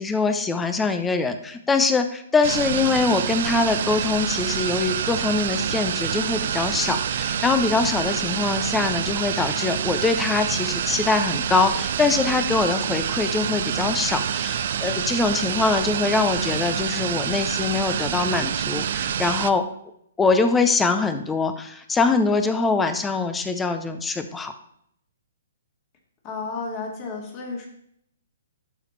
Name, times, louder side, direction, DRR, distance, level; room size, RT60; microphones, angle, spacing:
voice 1, 0.0-19.6 20.2-24.5, left 4 dB, 10° left, 8 dB, 0.6 m, -23 dB
sound 1, 2.4-19.5, right 8 dB, 55° right, 0.4 m, -27 dB
voice 2, 26.2-27.7, left 4 dB, 30° left, 0 dB, 2.4 m, -32 dB
12.0 x 4.9 x 3.3 m, 0.70 s
hypercardioid pair, 130°, 0 cm